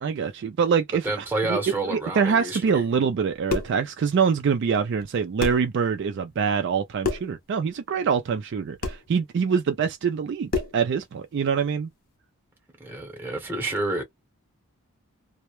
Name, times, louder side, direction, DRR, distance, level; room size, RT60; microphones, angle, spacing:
voice 1, 0.0-11.9, right 6 dB, 55° right, 0.3 m, -25 dB
voice 2, 1.0-2.8 12.8-14.0, right 2 dB, 10° right, 0.8 m, -29 dB
sound 1, 3.2-3.8 5.0-5.1 5.4-5.7 7.0-7.4 8.8-9.1 10.5-10.8, left 4 dB, 45° left, 0.6 m, -28 dB
2.1 x 2.1 x 2.9 m
head